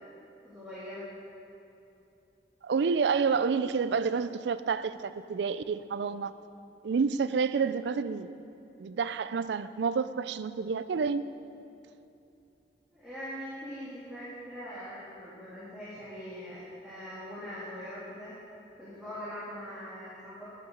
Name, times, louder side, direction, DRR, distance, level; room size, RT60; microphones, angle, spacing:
voice 1, 0.4-1.1 12.9-18.3 18.8-20.5, equal, 5° right, -11 dB, 1.9 m, -42 dB
voice 2, 2.6-6.3 6.8-8.3 8.8-11.2, right 5 dB, 85° right, 13 dB, 0.4 m, -29 dB
9.7 x 5.9 x 7.4 m, 2.8 s
head